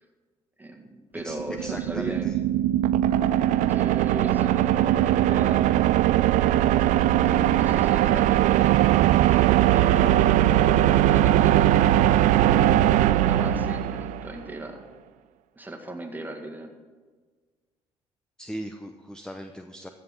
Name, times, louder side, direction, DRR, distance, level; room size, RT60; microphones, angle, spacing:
voice 1, 0.6-2.3 3.7-5.7 7.3-10.2 10.8-12.2 12.7-14.8 15.6-16.7, right 1 dB, 15° right, 2 dB, 1.9 m, -38 dB
voice 2, 1.2-2.4 18.4-19.9, equal, 5° left, 6 dB, 0.7 m, -38 dB
sound 1, 1.2-14.4, right 13 dB, 70° right, 0.4 m, -20 dB
14.5 x 5.5 x 6.1 m, 1.4 s
hypercardioid pair, 55°, 14 cm